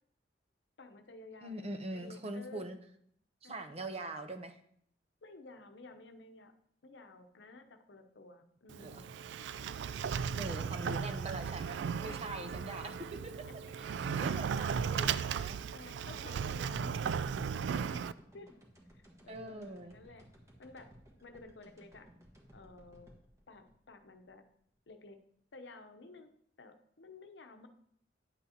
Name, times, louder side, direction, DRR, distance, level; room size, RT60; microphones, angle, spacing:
voice 1, 0.8-2.6 3.4-3.9 5.2-6.5 6.8-9.1 10.0-10.3 11.7-12.2 12.8-12.9 13.5-13.6 14.3-15.1 15.7-17.3 17.5-18.5 18.9-20.2 20.6-20.9 21.2-22.1 22.5-23.1 23.5-24.4 24.9-25.2 25.5-26.3 26.6-27.7, left 3 dB, 85° left, 7 dB, 0.8 m, -53 dB
voice 2, 1.4-2.8 3.4-4.5 8.8-9.0 10.4-12.9 13.7-13.9 14.2-15.6 19.3-19.9, right 2 dB, 35° right, 8 dB, 0.7 m, -42 dB
Sliding door, 8.7-18.1, right 7 dB, 80° right, 0.3 m, -36 dB
sound 1, 13.7-24.9, equal, 15° right, 1.4 m, -59 dB
9.8 x 8.1 x 2.8 m, 0.66 s
head